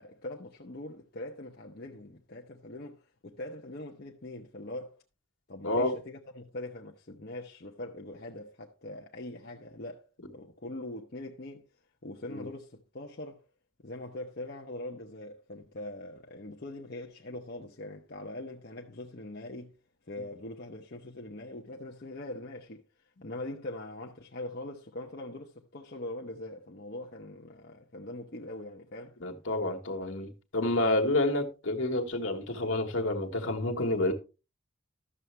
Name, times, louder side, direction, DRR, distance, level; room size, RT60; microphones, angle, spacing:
voice 1, 0.0-5.0 5.5-10.0 10.3-11.7 12.0-13.4 13.8-19.8 20.1-22.8 23.2-29.2, left 1 dB, 50° left, 0.8 m, -42 dB
voice 2, 5.6-5.9 12.3-12.5 29.2-34.1, left 2 dB, 70° left, 1.5 m, -29 dB
12.5 x 7.0 x 3.3 m
head